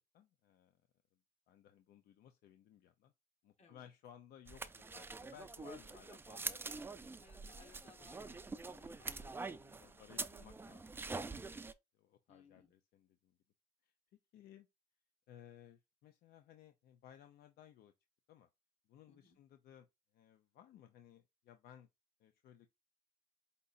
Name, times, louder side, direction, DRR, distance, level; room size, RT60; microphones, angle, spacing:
voice 1, 0.1-0.8 1.5-3.1 3.4-7.1 8.9-9.0 9.8-11.2 11.9-13.3 13.8-13.9 14.3-14.7 15.3-17.9 18.3-18.5 18.9-19.9 20.1-21.9 22.2-22.8, left 10 dB, 65° left, 0.6 m, -60 dB
voice 2, 3.6-3.9 7.2-8.4 8.7-10.0 12.3-12.7 19.1-19.4, left 5 dB, 40° left, 1.4 m, -64 dB
sound 1, 4.5-11.7, right 3 dB, 15° right, 0.4 m, -45 dB
5.2 x 2.8 x 2.5 m
cardioid pair, 110°, 17 cm